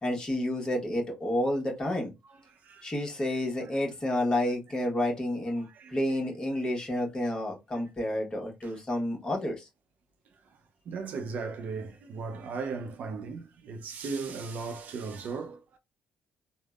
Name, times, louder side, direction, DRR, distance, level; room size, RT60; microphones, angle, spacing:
voice 1, 0.0-2.1 2.8-9.7, left 1 dB, 25° left, 1.0 m, -30 dB
voice 2, 2.3-2.9 3.6-3.7 5.6-6.0 8.6-8.7 10.9-15.8, right 4 dB, 60° right, 0.5 m, -37 dB
3.4 x 2.0 x 2.3 m
cardioid pair, 95°, 3 cm